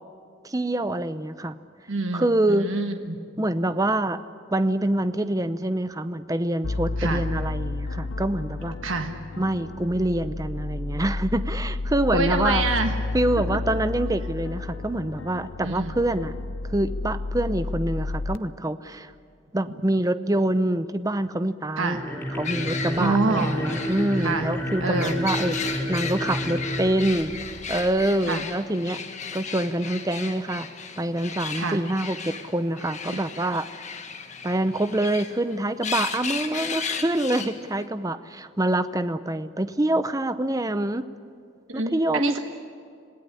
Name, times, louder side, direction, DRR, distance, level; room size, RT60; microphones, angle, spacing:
voice 1, 0.4-1.6 2.1-2.7 3.4-4.2 4.5-8.8 9.4-12.7 13.1-16.3 16.7-19.1 19.5-27.3 27.7-29.0 29.3-30.7 31.0-33.7 34.4-41.0 41.7-42.4, right 1 dB, 15° right, 12 dB, 0.7 m, -26 dB
voice 2, 1.9-3.2 7.0-7.2 8.8-9.1 12.1-12.9 15.6-15.9 21.8-22.0 23.0-23.6 24.2-24.5 24.8-25.2 28.3-28.4 31.5-31.8 33.1-33.2 41.7-42.4, right 3 dB, 75° right, 5 dB, 1.4 m, -26 dB
sound 1, 6.6-18.4, left 2 dB, 70° left, 0.7 m, -31 dB
sound 2, 21.8-28.1, equal, 10° left, 3.8 m, -30 dB
sound 3, 22.4-37.9, left 6 dB, 35° left, 1.7 m, -35 dB
26.5 x 17.5 x 9.9 m, 2.4 s
head